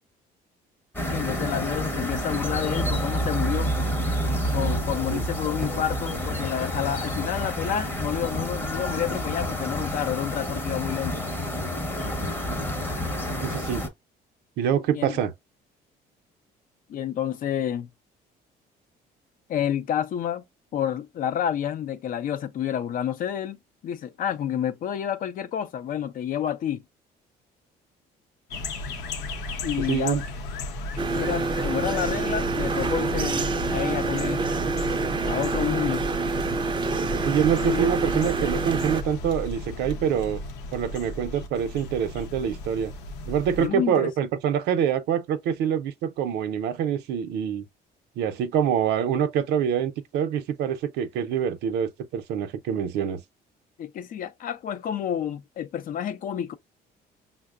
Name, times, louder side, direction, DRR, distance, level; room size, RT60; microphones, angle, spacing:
sound 1, 0.9-13.9, equal, 10° left, 0.8 m, -29 dB
voice 1, 1.1-3.8 4.5-11.3 14.9-15.2 16.9-17.9 19.5-20.4 20.7-26.8 29.6-30.2 31.1-34.5 35.3-36.1 37.6-37.9 43.6-44.1 53.8-56.6, left 9 dB, 55° left, 0.5 m, -29 dB
voice 2, 13.4-13.8 14.6-15.3 29.9-30.2 37.1-40.4 40.7-42.9 43.3-47.7 48.2-53.2, right 8 dB, 80° right, 0.6 m, -25 dB
sound 2, 28.5-43.7, left 2 dB, 90° left, 0.7 m, -34 dB
sound 3, 31.0-39.0, right 4 dB, 25° right, 0.4 m, -27 dB
5.6 x 2.0 x 2.3 m
cardioid pair, 110°, 17 cm